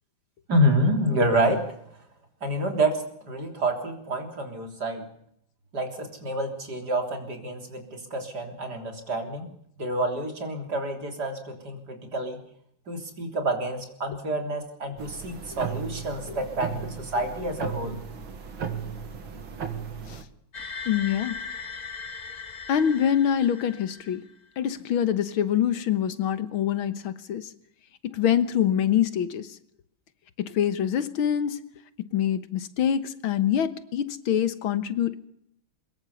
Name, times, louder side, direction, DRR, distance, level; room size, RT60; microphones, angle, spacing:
voice 1, 0.5-1.7 2.4-3.0 3.3-5.0 5.7-9.5 9.8-12.4 12.9-18.0, right 1 dB, 50° right, 4 dB, 4.0 m, -28 dB
sound 1, 15.0-20.2, right 7 dB, 75° right, 2.8 m, -36 dB
sound 2, 20.5-24.3, left 5 dB, 35° left, 0.6 m, -38 dB
voice 2, 20.9-21.4 22.7-24.3 24.6-27.5 28.0-29.6 30.4-31.6 32.1-35.2, left 9 dB, 80° left, 13 dB, 2.0 m, -25 dB
23.0 x 21.5 x 7.0 m, 0.71 s
omnidirectional pair, 2.2 m